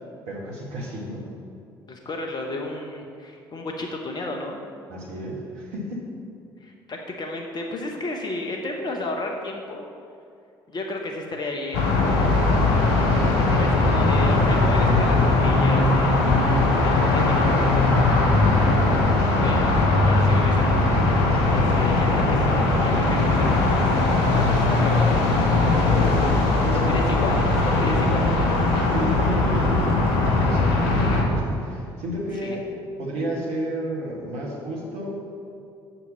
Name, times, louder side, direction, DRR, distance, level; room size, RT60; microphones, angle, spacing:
voice 1, 0.3-1.3 4.9-6.1 18.2-19.1 21.2-21.6 25.5-27.3 27.8-28.1 28.9-32.6 33.0-35.2, equal, 60° right, -3 dB, 1.8 m, -31 dB
voice 2, 1.8-4.6 6.6-9.8 10.7-12.7 13.5-17.6 19.3-25.2 26.7-27.4 27.7-28.6 32.4-32.6, left 2 dB, 35° left, 2 dB, 1.0 m, -33 dB
sound 1, 11.7-31.2, left 2 dB, 65° left, 1.1 m, -20 dB
6.6 x 5.9 x 7.1 m, 2.4 s
figure-of-eight pair, 50°, 12 cm